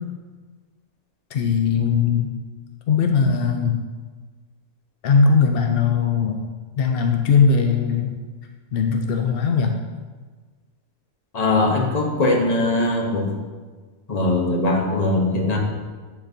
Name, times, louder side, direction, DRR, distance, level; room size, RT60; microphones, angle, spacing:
voice 1, 1.3-2.3 2.9-3.8 5.0-6.4 6.8-8.2 8.7-9.7, left 5 dB, 90° left, 4 dB, 0.5 m, -19 dB
voice 2, 11.3-13.3 14.1-15.6, left 2 dB, 30° left, 0 dB, 0.8 m, -20 dB
10.0 x 4.3 x 2.7 m, 1.4 s
omnidirectional pair, 1.6 m